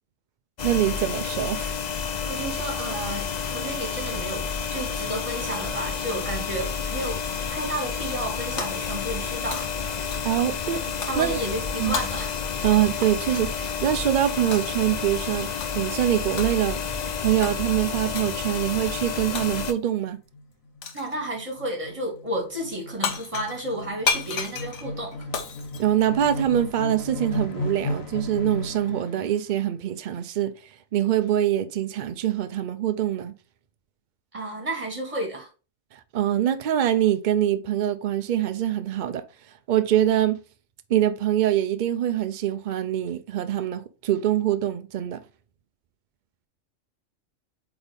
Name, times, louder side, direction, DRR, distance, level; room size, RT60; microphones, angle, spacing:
sound 1, 0.6-19.7, left 6 dB, 45° left, 0.6 m, -30 dB
voice 1, 0.6-1.8 10.2-10.8 11.2-11.4 11.8-11.9 12.6-15.5 15.7-16.8 17.2-20.2 25.8-30.5 30.9-33.3 35.9-39.2 39.7-40.4 40.9-45.2, right 11 dB, 80° right, 0.4 m, -24 dB
voice 2, 2.3-4.5 4.7-7.2 7.5-9.7 11.1-12.3 20.9-25.3 34.3-35.5, right 1 dB, 25° right, 2.1 m, -32 dB
Shatter, 8.6-9.2 9.5-10.5 11.0-11.3 11.9-13.5 14.5-14.9 15.6-15.9 16.4-16.9 17.4-17.6 18.2-18.4 19.4-19.9 20.8-21.2 22.7-22.8 23.0-26.6, left 5 dB, 65° left, 1.2 m, -33 dB
sound 2, 19.9-29.3, left 1 dB, 85° left, 1.5 m, -35 dB
8.0 x 3.5 x 3.5 m
omnidirectional pair, 1.4 m